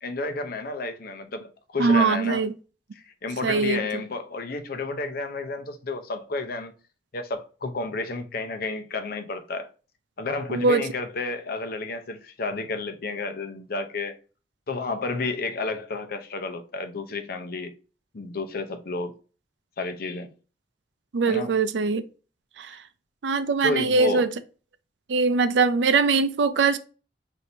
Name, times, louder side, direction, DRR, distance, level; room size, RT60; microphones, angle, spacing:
voice 1, 0.0-2.4 3.0-6.7 7.1-9.7 10.2-14.2 14.7-17.7 18.1-19.1 19.8-20.3 21.2-21.5 23.6-24.3, left 3 dB, 60° left, 0.7 m, -31 dB
voice 2, 1.8-2.5 3.4-3.9 10.5-10.8 21.1-22.0 22.6-22.8 23.2-24.3 25.1-26.8, right 4 dB, 85° right, 0.5 m, -22 dB
6.1 x 2.7 x 2.6 m
head